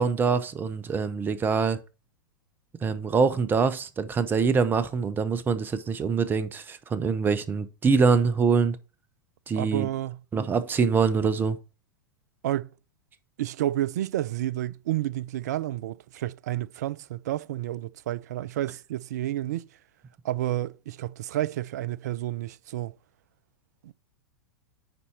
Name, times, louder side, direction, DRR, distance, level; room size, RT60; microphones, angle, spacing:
voice 1, 0.0-1.8 2.8-8.8 9.5-9.9 10.3-11.6, right 5 dB, 20° right, 0.7 m, -24 dB
voice 2, 9.5-10.2 12.4-12.7 13.4-19.7 20.2-22.9 23.8-23.9, right 13 dB, 55° right, 0.4 m, -30 dB
9.8 x 4.2 x 4.3 m
figure-of-eight pair, 95°, 11 cm